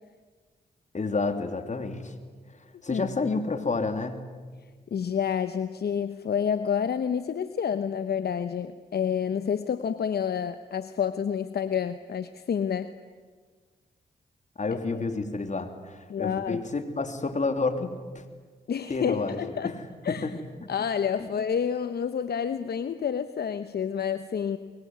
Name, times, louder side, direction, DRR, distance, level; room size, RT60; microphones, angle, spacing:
voice 1, 0.9-2.1 2.8-4.2 14.6-18.2 18.9-19.4 19.6-19.8 20.1-20.3 21.2-21.3, left 3 dB, 40° left, 8 dB, 3.2 m, -29 dB
voice 2, 4.9-12.9 16.1-16.6 18.7-19.7 20.0-20.3 20.7-24.6, left 7 dB, 65° left, 11 dB, 1.1 m, -29 dB
23.0 x 23.0 x 9.6 m, 1.5 s
cardioid pair, 55°, 18 cm